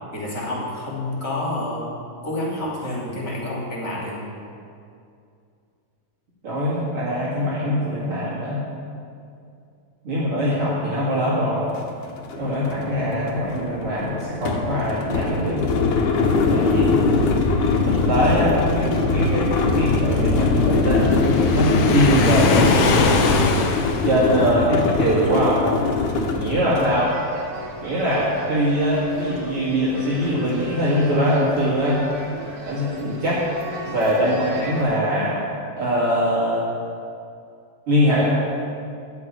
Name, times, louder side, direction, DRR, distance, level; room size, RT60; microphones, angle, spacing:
voice 1, 0.1-1.9 2.2-4.2, left 1 dB, 35° left, -4 dB, 3.4 m, -28 dB
voice 2, 6.4-8.6 10.0-11.7 12.4-15.6 16.5-17.1 17.8-21.1 21.5-23.1 24.0-25.6 26.4-27.1 27.8-32.0 32.7-33.4 33.8-35.4 35.8-36.6 37.9-38.3, equal, 50° right, -9 dB, 3.1 m, -22 dB
Cart Iron, 11.8-11.9 12.2-26.9, left 3 dB, 90° left, 2.6 m, -21 dB
Waves surf, 20.9-24.4, left 3 dB, 65° left, 1.7 m, -21 dB
sound 1, 26.6-34.8, right 1 dB, 65° right, 3.3 m, -38 dB
14.0 x 6.1 x 9.1 m, 2.4 s
omnidirectional pair, 3.3 m